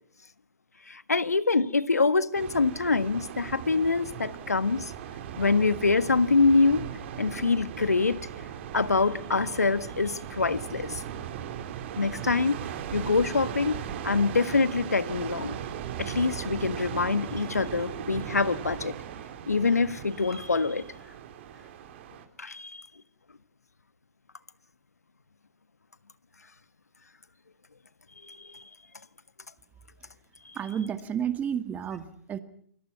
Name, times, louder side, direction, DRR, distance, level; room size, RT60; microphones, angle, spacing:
voice 1, 0.9-4.9 5.4-6.8 7.2-8.2 8.7-11.0 12.0-12.6 12.9-15.6 16.0-18.9 19.5-20.8 22.4-22.8 28.3-28.6, left 4 dB, 90° left, 1.5 m, -25 dB
sound 1, 2.3-22.3, right 9 dB, 50° right, 3.8 m, -38 dB
voice 2, 30.6-32.4, right 8 dB, 20° right, 2.0 m, -31 dB
28.5 x 22.0 x 5.8 m
hypercardioid pair, 125°, 8 cm